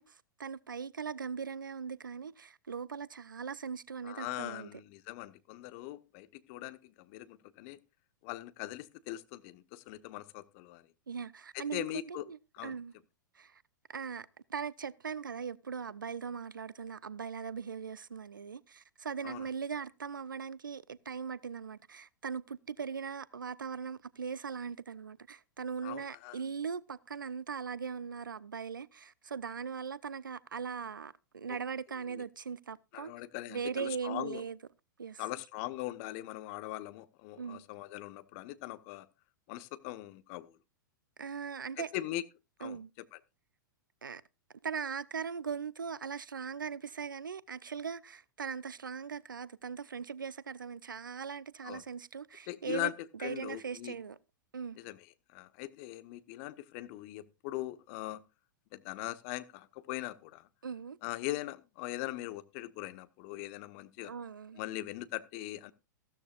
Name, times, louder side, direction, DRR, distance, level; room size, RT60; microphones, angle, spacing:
voice 1, 0.0-4.7 11.1-12.9 13.4-13.6 13.9-33.1 33.5-34.6 35.0-35.2 37.4-37.6 41.2-41.9 42.6-42.9 44.0-44.2 44.6-52.9 53.2-54.2 54.5-54.8 60.6-61.0 64.0-64.6, right 6 dB, 75° right, 0.6 m, -40 dB
voice 2, 4.0-7.8 8.2-10.8 11.5-12.3 12.6-12.8 19.2-19.4 25.8-26.4 31.5-31.6 32.1-32.2 32.9-34.4 35.2-39.1 39.5-40.5 41.8-42.2 42.6-43.2 51.6-51.8 52.5-52.9 53.2-53.9 54.8-55.0 55.3-58.2 58.7-60.5 61.0-64.1 64.6-65.7, left 16 dB, 45° left, 1.1 m, -41 dB
15.0 x 13.0 x 2.4 m
figure-of-eight pair, 100°, 11 cm